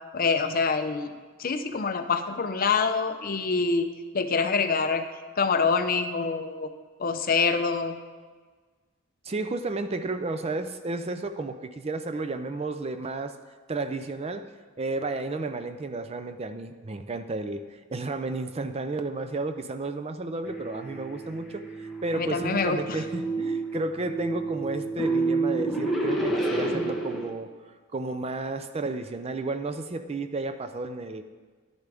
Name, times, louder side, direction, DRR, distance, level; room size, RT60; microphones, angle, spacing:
voice 1, 0.1-1.1 1.4-3.9 4.1-5.1 5.4-6.7 7.0-8.0 22.1-23.0, left 4 dB, 40° left, 8 dB, 0.6 m, -25 dB
voice 2, 9.2-13.3 13.7-14.5 14.8-27.5 27.9-31.2, right 2 dB, 30° right, 9 dB, 0.4 m, -32 dB
sound 1, 20.4-27.3, right 3 dB, ahead, 1.3 m, -29 dB
11.5 x 10.5 x 3.4 m, 1.4 s
head